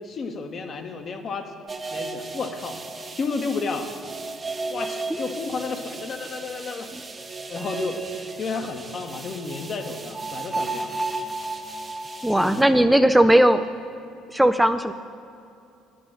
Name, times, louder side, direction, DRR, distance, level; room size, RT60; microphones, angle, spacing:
voice 1, 0.0-1.5 1.9-2.8 3.2-3.9 4.7-6.9 7.5-8.0 8.4-11.0 12.3-12.9, left 4 dB, 45° left, 6 dB, 1.1 m, -32 dB
sound 1, 1.7-12.6, right 3 dB, 30° right, 0.9 m, -34 dB
voice 2, 12.2-13.7 14.3-14.9, right 1 dB, 5° right, 9 dB, 0.4 m, -17 dB
9.8 x 7.5 x 7.3 m, 2.6 s
hypercardioid pair, 55°, 0 cm